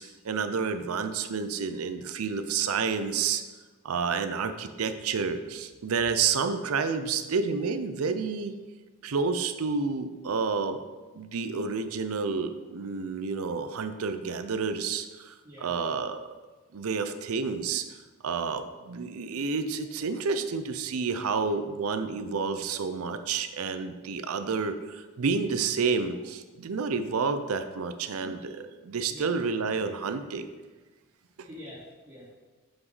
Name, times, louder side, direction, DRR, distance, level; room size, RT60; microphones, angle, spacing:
voice 1, 0.0-3.4 3.8-8.5 9.0-10.8 11.1-16.3 16.7-18.0 18.2-30.5 31.4-31.5, right 5 dB, 85° right, 9 dB, 0.5 m, -30 dB
voice 2, 15.4-15.9 28.2-28.3 29.1-29.3 31.4-32.4, left 1 dB, 20° right, -14 dB, 2.6 m, -46 dB
7.2 x 5.8 x 4.0 m, 1.3 s
head